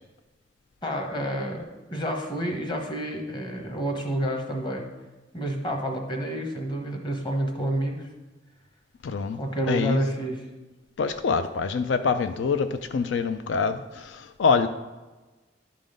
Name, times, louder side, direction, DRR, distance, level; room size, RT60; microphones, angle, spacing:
voice 1, 0.8-4.9 5.3-8.1 9.3-10.4, right 1 dB, 25° left, 3 dB, 1.1 m, -29 dB
voice 2, 9.0-9.4 9.7-10.0 11.0-14.7, left 5 dB, 80° left, 9 dB, 0.4 m, -25 dB
11.5 x 3.8 x 5.1 m, 1.2 s
head